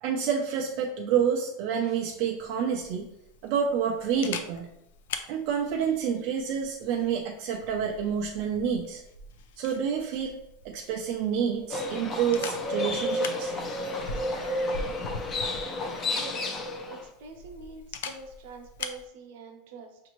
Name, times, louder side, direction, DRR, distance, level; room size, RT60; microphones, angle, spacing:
voice 1, 0.0-3.1 3.4-4.7 5.3-9.0 9.6-10.4 10.6-13.5, right 7 dB, 45° right, 1 dB, 0.4 m, -28 dB
Camera, 2.4-19.1, left 4 dB, 90° left, 0.4 m, -43 dB
Livestock farm animals working animals, 11.7-17.0, left 1 dB, 20° left, 0.5 m, -31 dB
voice 2, 16.1-16.6 16.9-20.0, right 3 dB, 65° right, 4 dB, 0.7 m, -45 dB
5.8 x 2.6 x 3.0 m, 0.85 s
supercardioid pair, 170°, 0 cm